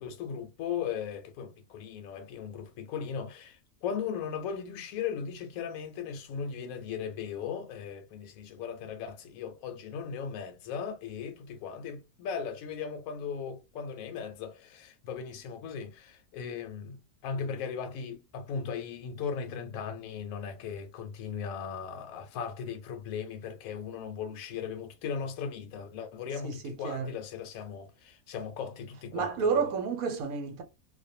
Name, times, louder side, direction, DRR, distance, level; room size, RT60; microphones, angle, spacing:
voice 1, 0.0-17.0 17.2-29.4, left 7 dB, 75° left, 1.0 m, -37 dB
voice 2, 26.4-27.1 29.1-30.6, right 5 dB, 80° right, 1.2 m, -30 dB
2.5 x 2.2 x 2.6 m
omnidirectional pair, 1.5 m